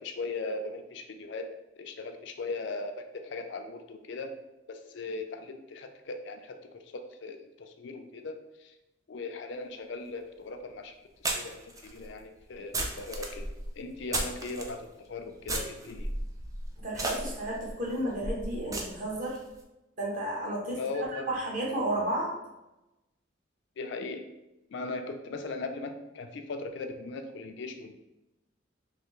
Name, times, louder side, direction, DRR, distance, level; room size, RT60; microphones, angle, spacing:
voice 1, 0.0-1.5 1.8-4.3 4.7-8.7 9.1-13.5 13.7-16.1 20.7-21.3 23.8-24.2 24.7-28.0, left 3 dB, 60° left, 6 dB, 0.4 m, -38 dB
sound 1, 10.2-10.3 11.2-14.7 15.4-19.4, right 2 dB, 15° right, 0.3 m, -35 dB
voice 2, 16.8-19.4 20.0-22.3, right 1 dB, 45° right, -3 dB, 0.9 m, -32 dB
3.3 x 2.7 x 3.0 m, 0.95 s
head